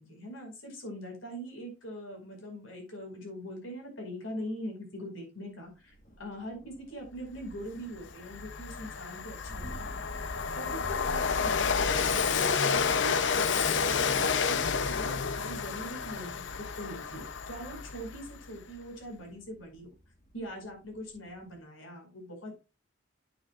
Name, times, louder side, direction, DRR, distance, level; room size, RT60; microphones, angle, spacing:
voice 1, 0.0-11.9 12.2-19.9 20.3-22.5, equal, 85° left, 2 dB, 5.4 m, -42 dB
Thunder, 5.8-21.6, right 1 dB, 45° left, 1.9 m, -49 dB
Train, 7.5-7.6 8.0-18.4, left 5 dB, 65° left, 0.7 m, -30 dB
9.9 x 8.8 x 2.5 m, 0.28 s
head